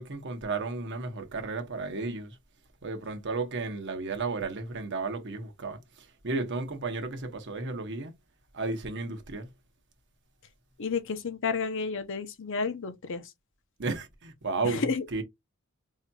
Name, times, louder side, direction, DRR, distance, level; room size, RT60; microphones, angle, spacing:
voice 1, 0.0-2.4 2.8-8.1 8.5-9.5 13.8-15.2, right 3 dB, 55° right, 0.9 m, -33 dB
voice 2, 10.8-13.3 14.6-15.2, left 5 dB, 60° left, 0.7 m, -31 dB
4.8 x 2.7 x 2.3 m
head